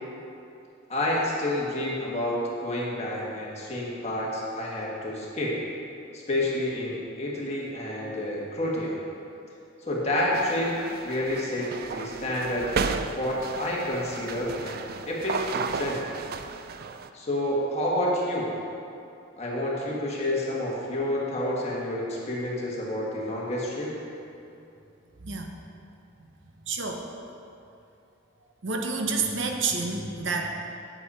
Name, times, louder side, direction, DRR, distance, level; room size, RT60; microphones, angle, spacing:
voice 1, 0.9-5.6 6.1-9.0 9.9-15.4 15.7-16.1 17.1-18.5 19.4-23.9, left 1 dB, 30° left, -4 dB, 1.6 m, -29 dB
sound 1, 10.3-17.1, right 5 dB, 50° right, 0.3 m, -34 dB
voice 2, 25.2-25.6 26.2-26.3 26.6-27.1 28.6-30.5, right 4 dB, 65° right, 2 dB, 0.8 m, -29 dB
8.7 x 7.9 x 4.3 m, 2.7 s
head